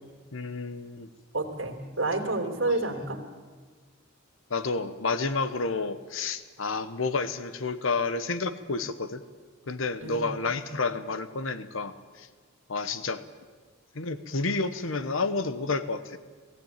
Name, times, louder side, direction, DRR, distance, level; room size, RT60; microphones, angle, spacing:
voice 1, 0.3-1.1 4.5-9.2 9.7-12.3 12.7-13.2 13.9-16.2, left 3 dB, 70° left, 13 dB, 1.0 m, -30 dB
voice 2, 1.3-3.2 10.0-10.3, right 2 dB, 65° right, 3 dB, 3.1 m, -29 dB
20.0 x 15.5 x 9.0 m, 1.4 s
head